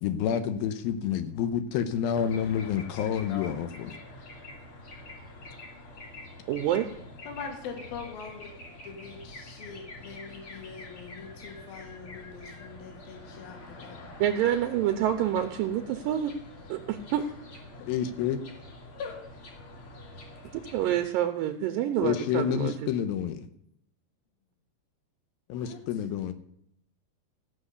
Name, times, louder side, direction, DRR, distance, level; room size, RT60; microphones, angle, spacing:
voice 1, 0.0-3.9 17.8-18.4 22.0-23.5 25.5-26.3, left 8 dB, 75° left, 10 dB, 2.4 m, -29 dB
sound 1, 2.1-21.0, left 2 dB, 40° left, 2.3 m, -46 dB
voice 2, 3.0-3.5 7.3-8.5 8.8-14.0 19.0-19.2 25.5-25.8, left 5 dB, 60° left, 2 dB, 3.8 m, -42 dB
voice 3, 6.5-6.9 14.2-16.3 16.7-17.2 20.7-22.9, right 11 dB, 80° right, 7 dB, 2.1 m, -27 dB
15.0 x 6.2 x 8.2 m, 0.73 s
omnidirectional pair, 4.9 m